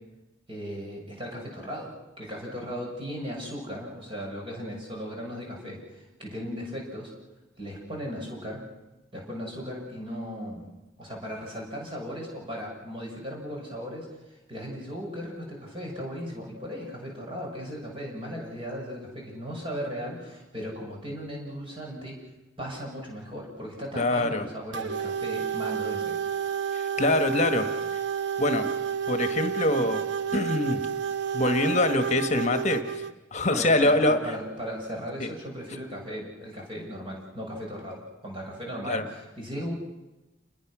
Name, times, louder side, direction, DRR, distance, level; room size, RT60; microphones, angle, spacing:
voice 1, 0.5-7.1 7.6-8.6 9.1-10.7 11.0-22.2 22.6-26.2 33.5-39.7, equal, 25° right, -1 dB, 6.6 m, -37 dB
voice 2, 24.0-24.5 26.7-27.7 28.4-28.7 29.1-30.1 30.3-30.8 31.3-33.0 33.3-34.2 35.2-35.3 38.9-39.0, left 2 dB, 35° left, 8 dB, 1.7 m, -24 dB
sound 1, 24.7-33.1, right 7 dB, 60° right, 0.8 m, -30 dB
29.0 x 21.0 x 6.3 m, 1.0 s
head